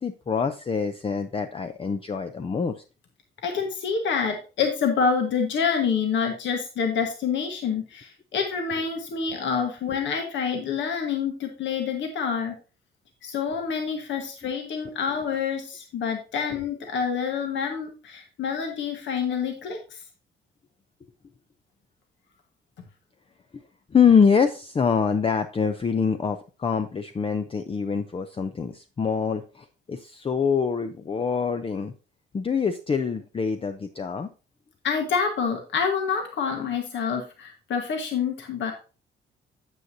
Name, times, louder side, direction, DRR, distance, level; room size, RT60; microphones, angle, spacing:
voice 1, 0.0-2.7 23.5-23.6 23.9-31.9 32.3-34.3, left 6 dB, 30° left, 7 dB, 0.6 m, -25 dB
voice 2, 3.4-12.6 13.2-20.0 34.8-38.7, left 6 dB, 70° left, 3 dB, 1.5 m, -27 dB
9.2 x 7.9 x 2.8 m, 0.33 s
cardioid pair, 90°, 20 cm